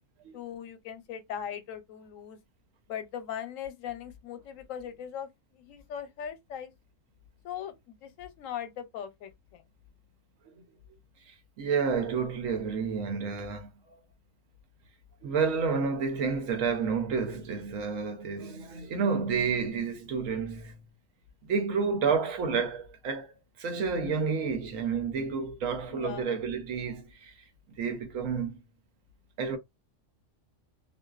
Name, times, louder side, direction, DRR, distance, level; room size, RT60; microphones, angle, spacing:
voice 1, 0.3-2.4 2.9-6.7 7.4-9.6 25.9-26.4, left 9 dB, 85° left, 1.0 m, -39 dB
voice 2, 11.3-13.7 15.2-20.9 21.4-27.3 27.8-28.6 29.4-29.6, right 5 dB, 85° right, 1.1 m, -30 dB
2.5 x 2.2 x 2.3 m
omnidirectional pair, 1.3 m